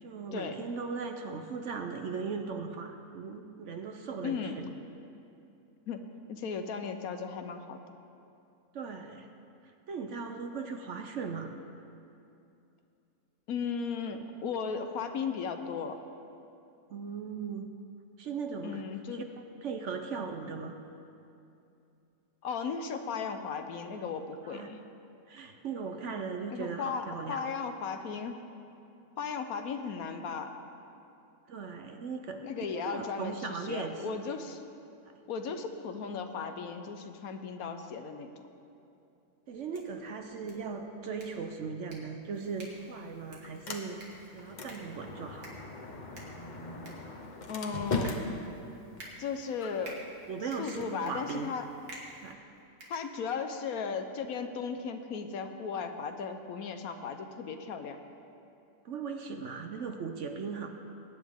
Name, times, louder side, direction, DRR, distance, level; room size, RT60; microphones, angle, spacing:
voice 1, 0.0-4.7 8.7-9.3 9.9-11.5 16.9-17.7 18.2-18.8 19.1-19.2 19.6-20.8 24.4-24.7 25.3-27.4 31.5-32.4 32.7-34.0 35.1-35.2 39.5-44.0 44.3-45.5 50.3-51.5 52.2-52.4 58.8-60.7, right 5 dB, 60° right, 6 dB, 0.9 m, -38 dB
voice 2, 4.2-4.6 5.9-7.8 13.5-16.0 18.6-19.2 22.4-24.8 26.5-28.4 29.2-30.5 32.4-34.6 35.3-38.3 47.5-48.2 49.2-50.0 50.6-51.7 52.9-58.0, left 5 dB, 70° left, 7 dB, 1.2 m, -36 dB
sound 1, 39.5-53.6, right 1 dB, 80° right, 2.5 m, -52 dB
Sliding door, 42.3-52.3, left 3 dB, 35° left, 0.9 m, -41 dB
21.5 x 9.5 x 3.6 m, 2.7 s
omnidirectional pair, 1.6 m